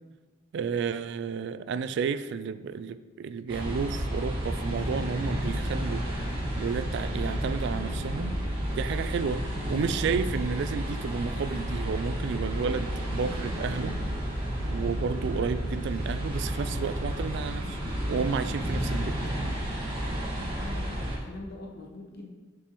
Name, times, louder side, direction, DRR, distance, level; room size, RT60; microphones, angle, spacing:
voice 1, 0.5-6.1 6.6-8.4 8.7-14.0 14.6-17.8 18.1-19.2, right 5 dB, 60° right, 14 dB, 0.3 m, -31 dB
sound 1, 3.5-21.2, equal, 25° right, 1.6 m, -31 dB
voice 2, 20.2-22.3, left 2 dB, 55° left, 1 dB, 1.0 m, -43 dB
6.7 x 5.2 x 3.0 m, 1.4 s
head